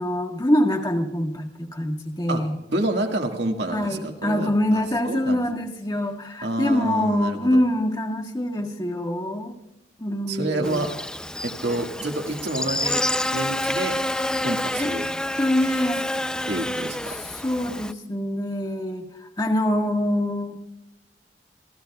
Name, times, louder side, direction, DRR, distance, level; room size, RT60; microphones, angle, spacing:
voice 1, 0.0-2.6 3.7-9.5 10.0-10.9 14.8-14.9 15.4-16.0 17.1-20.6, left 1 dB, 25° left, 2 dB, 1.6 m, -25 dB
voice 2, 2.7-5.4 6.4-7.6 10.3-10.9 11.4-13.0 13.3-13.9 14.4-15.1 16.5-17.1, right 1 dB, 75° right, 2 dB, 1.9 m, -28 dB
Buzz, 10.6-17.9, left 1 dB, 5° left, 0.5 m, -28 dB
26.5 x 15.5 x 2.4 m, 0.90 s
head